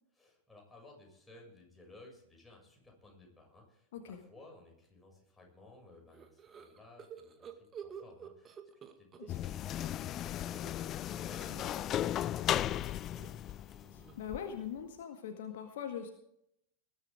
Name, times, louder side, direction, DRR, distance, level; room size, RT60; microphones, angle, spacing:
voice 1, 0.1-8.6 9.0-13.3, left 2 dB, 5° left, -1 dB, 6.9 m, -58 dB
sound 1, 6.1-9.6 9.9-14.4, right 7 dB, 25° right, 1.9 m, -52 dB
sound 2, 7.7-7.8 8.7-9.6 10.5-12.9 13.2-13.3 14.8-14.9, right 2 dB, 45° right, 4.8 m, -60 dB
voice 2, 9.2-9.5 13.9-16.1, left 8 dB, 55° left, 5 dB, 1.8 m, -42 dB
sound 3, 9.3-14.4, left 12 dB, 30° left, 0.4 m, -36 dB
20.0 x 12.5 x 3.7 m, 0.74 s
figure-of-eight pair, 90°, 0 cm